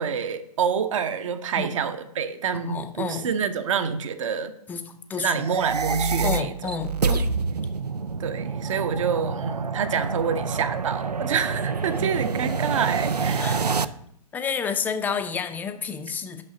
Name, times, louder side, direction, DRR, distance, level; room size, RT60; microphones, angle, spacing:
voice 1, 0.0-4.5 5.2-6.5 7.0-7.2 8.2-13.6, right 7 dB, 55° right, 10 dB, 1.0 m, -27 dB
voice 2, 2.6-3.3 4.7-5.4 6.2-7.2 13.4-13.6 14.3-16.4, left 6 dB, 10° left, 8 dB, 0.5 m, -30 dB
sound 1, 5.3-13.8, right 4 dB, 90° right, 0.4 m, -27 dB
6.4 x 5.6 x 6.2 m, 0.72 s
figure-of-eight pair, 120°, 20 cm